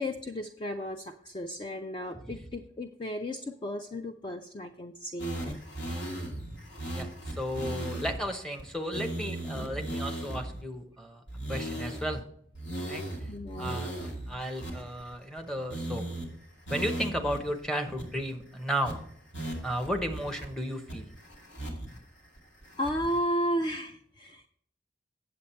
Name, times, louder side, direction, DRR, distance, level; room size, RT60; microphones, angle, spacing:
voice 1, 0.0-5.6 13.3-13.8 22.8-24.5, equal, 25° left, 6 dB, 0.4 m, -34 dB
sound 1, 5.2-8.2 8.6-8.7 8.9-10.6 11.3-12.2 12.5-15.4 15.7-16.3 16.7-17.4 17.6-17.7 18.0-18.4 18.8-18.9 19.3-20.5 20.9-22.0 22.4-23.2, right 1 dB, 80° left, 2.4 m, -37 dB
voice 2, 7.4-11.2 11.5-12.2 12.9-13.0 13.6-13.9 14.3-16.0 16.7-19.0 19.6-21.1, equal, 5° left, 3 dB, 0.8 m, -34 dB
8.5 x 7.7 x 4.3 m, 0.67 s
head